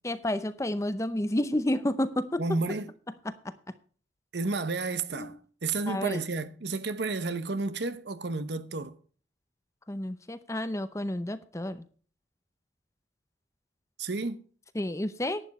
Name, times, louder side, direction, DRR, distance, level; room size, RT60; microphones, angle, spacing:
voice 1, 0.0-2.4 3.2-3.5 5.1-5.3 5.9-6.2 9.9-11.8 14.7-15.4, left 1 dB, 15° left, 0.6 m, -30 dB
voice 2, 2.4-2.9 4.3-5.3 5.6-9.0 14.0-14.4, right 3 dB, 60° right, 0.9 m, -31 dB
11.5 x 9.6 x 4.2 m
head